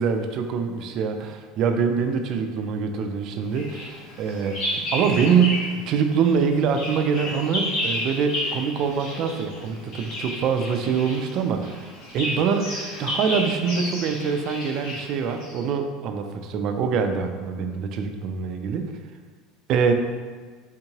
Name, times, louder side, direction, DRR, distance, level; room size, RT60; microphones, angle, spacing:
voice 1, 0.0-11.9 12.1-12.7 13.0-18.9 19.7-19.9, right 6 dB, 50° right, 6 dB, 0.3 m, -24 dB
Bird vocalization bird call bird song, 3.5-5.8 6.1-15.6, left 1 dB, 65° left, 1.3 m, -32 dB
3.6 x 2.7 x 2.8 m, 1.5 s
supercardioid pair, 125°, 0 cm